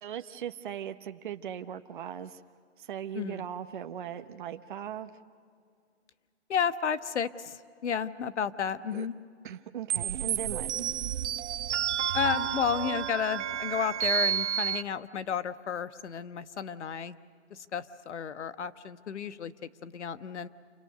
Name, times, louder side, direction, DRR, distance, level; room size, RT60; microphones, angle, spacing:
voice 1, 0.0-2.4 2.8-5.1 8.9-9.1 9.4-10.9, right 9 dB, 45° right, 7 dB, 0.9 m, -39 dB
voice 2, 3.1-3.4 6.5-9.1 12.1-17.2 17.5-19.5 19.8-20.5, left 7 dB, 75° left, 12 dB, 1.2 m, -32 dB
sound 1, 9.9-14.8, right 10 dB, 75° right, 0.6 m, -30 dB
28.5 x 25.0 x 6.7 m, 2.2 s
hypercardioid pair, 170°, 35 cm